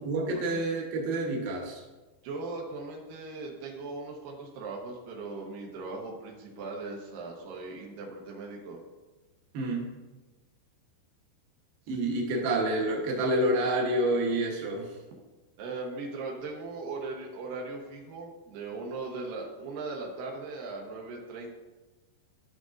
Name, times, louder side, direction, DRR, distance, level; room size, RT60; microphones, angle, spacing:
voice 1, 0.1-1.8 9.5-9.9 11.9-14.9, right 1 dB, 70° right, -1 dB, 2.4 m, -28 dB
voice 2, 2.2-8.8 11.9-12.0 15.6-21.5, right 3 dB, 85° right, -1 dB, 2.0 m, -39 dB
11.0 x 6.2 x 2.5 m, 1.2 s
omnidirectional pair, 5.5 m